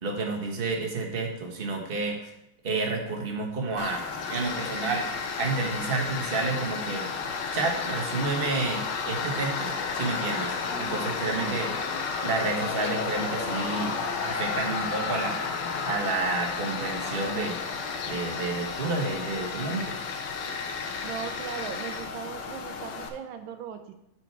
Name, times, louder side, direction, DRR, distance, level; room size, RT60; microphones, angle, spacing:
voice 1, 0.0-2.3 2.6-5.1 5.4-7.1 7.5-11.7 12.2-13.9 14.2-15.4 15.9-17.6 18.0-20.0, right 3 dB, 30° right, 1 dB, 1.3 m, -30 dB
Tools, 3.8-23.1, left 5 dB, 65° left, 1.4 m, -32 dB
voice 2, 21.0-23.9, right 8 dB, 85° right, 8 dB, 1.5 m, -38 dB
9.1 x 5.2 x 4.5 m, 0.84 s
omnidirectional pair, 2.1 m